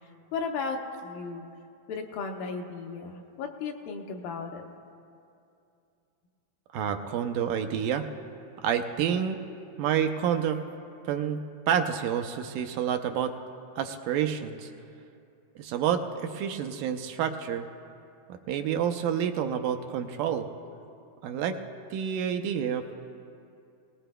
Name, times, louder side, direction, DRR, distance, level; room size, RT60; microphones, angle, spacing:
voice 1, 0.3-1.5 1.9-4.6, left 4 dB, 85° left, 2 dB, 2.6 m, -35 dB
voice 2, 6.7-8.1 8.6-9.4 9.8-10.6 11.1-13.3 13.8-14.7 15.6-17.6 18.3-20.5 21.2-21.6 21.9-23.0, right 8 dB, 85° right, 6 dB, 2.1 m, -29 dB
20.5 x 19.0 x 2.2 m, 2.6 s
omnidirectional pair, 3.9 m